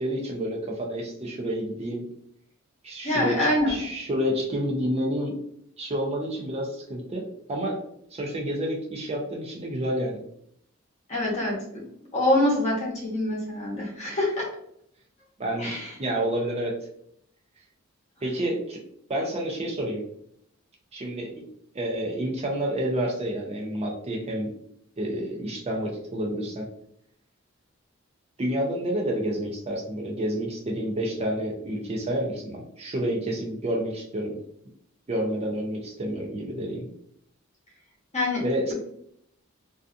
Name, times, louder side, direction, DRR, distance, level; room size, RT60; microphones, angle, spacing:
voice 1, 0.0-2.1 2.8-3.4 3.7-5.4 5.8-7.8 8.1-10.2 15.4-15.7 16.0-16.7 18.2-18.8 19.1-20.0 20.9-21.4 21.7-24.5 25.0-26.7 28.4-34.4 35.1-36.9 38.4-38.7, right 1 dB, 30° right, 0 dB, 0.5 m, -29 dB
voice 2, 3.0-3.8 11.1-11.9 12.1-14.5 15.6-15.9 38.1-38.4, left 1 dB, 35° left, -4 dB, 0.9 m, -25 dB
2.6 x 2.3 x 2.4 m, 0.70 s
head